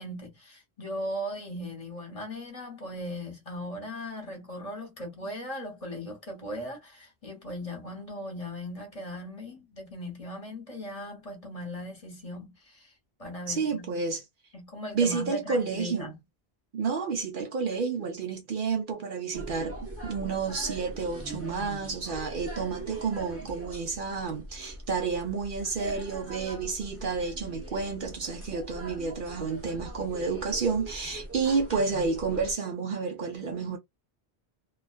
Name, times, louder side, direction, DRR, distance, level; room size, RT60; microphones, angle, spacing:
voice 1, 0.0-12.9 13.2-14.1 14.5-16.2, equal, 35° left, 1.1 m, -38 dB
voice 2, 13.5-14.2 14.9-16.1 16.7-19.8 20.0-33.8, right 5 dB, 60° right, 0.7 m, -30 dB
sound 1, 19.3-32.5, right 1 dB, 15° right, 0.6 m, -41 dB
2.3 x 2.3 x 2.3 m
omnidirectional pair, 1.1 m